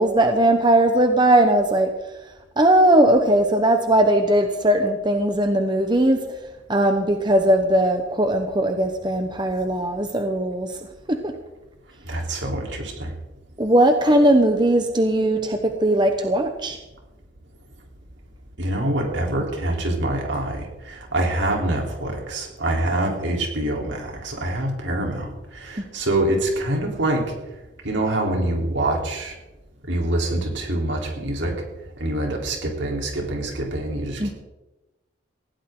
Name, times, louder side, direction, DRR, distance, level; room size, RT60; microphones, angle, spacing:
voice 1, 0.0-1.9 2.6-6.2 6.7-10.7 11.1-11.3 13.6-16.8 34.2-34.3, right 1 dB, 25° right, 5 dB, 1.1 m, -19 dB
voice 2, 12.0-13.1 18.6-27.3 27.8-29.4 29.9-31.5 32.0-34.3, right 1 dB, 75° right, 0 dB, 4.0 m, -25 dB
19.5 x 16.5 x 3.9 m, 1.1 s
head